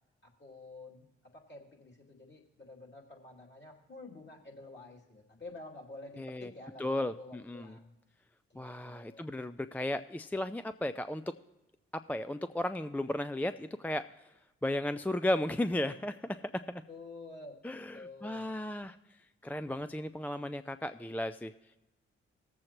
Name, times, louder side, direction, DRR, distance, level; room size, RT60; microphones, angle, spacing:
voice 1, 0.2-1.1 1.3-7.9 8.5-9.3 16.9-17.5 17.9-18.4, left 2 dB, 35° left, -2 dB, 2.7 m, -49 dB
voice 2, 6.2-6.5 6.8-7.8 8.6-11.2 11.9-14.1 14.6-16.8 17.6-19.0 19.4-21.5, left 1 dB, 5° left, 11 dB, 0.3 m, -35 dB
18.0 x 7.6 x 3.0 m, 1.0 s
hypercardioid pair, 40°, 29 cm